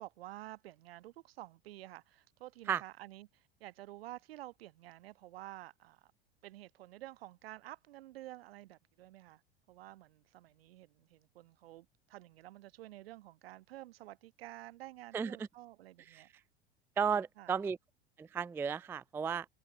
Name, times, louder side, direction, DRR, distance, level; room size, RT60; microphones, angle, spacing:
voice 1, 0.0-6.1 6.4-9.4 9.7-16.3 17.4-17.5, right 16 dB, 70° right, 2.7 m, -51 dB
voice 2, 17.0-17.8 18.2-19.5, right 7 dB, 10° right, 0.3 m, -34 dB
hypercardioid pair, 80°, 31 cm